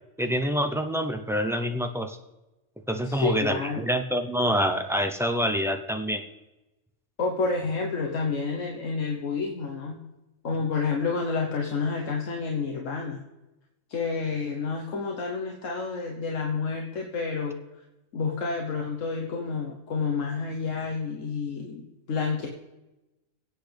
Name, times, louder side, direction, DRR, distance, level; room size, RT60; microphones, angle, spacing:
voice 1, 0.2-2.2 2.9-6.2, equal, 5° right, 5 dB, 0.3 m, -26 dB
voice 2, 3.0-3.8 7.2-10.0 10.4-13.2 13.9-17.6 18.1-22.5, left 4 dB, 80° left, 1 dB, 1.5 m, -29 dB
23.0 x 8.2 x 3.4 m, 1.0 s
omnidirectional pair, 1.3 m